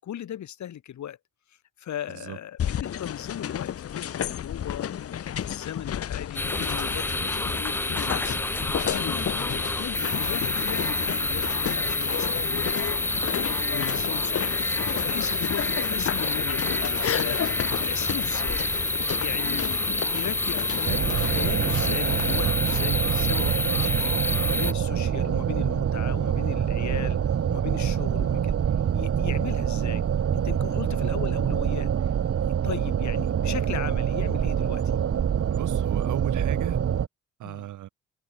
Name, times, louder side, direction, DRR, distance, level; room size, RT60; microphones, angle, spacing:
voice 1, 0.0-1.2 1.8-8.5 8.9-13.2 13.7-14.6 15.0-17.4 17.8-18.7 19.1-28.6 28.9-30.0 30.3-32.1 32.6-34.8 37.4-37.7, left 11 dB, 70° left, 6.1 m, -38 dB
sound 1, 2.6-22.5, left 9 dB, 50° left, 1.1 m, -32 dB
sound 2, 6.4-24.7, left 2 dB, 5° left, 0.5 m, -28 dB
sound 3, 20.9-37.1, right 8 dB, 50° right, 2.4 m, -25 dB
voice 2, 35.5-36.8 37.4-37.9, right 13 dB, 80° right, 2.9 m, -35 dB
cardioid pair, 90°, 30 cm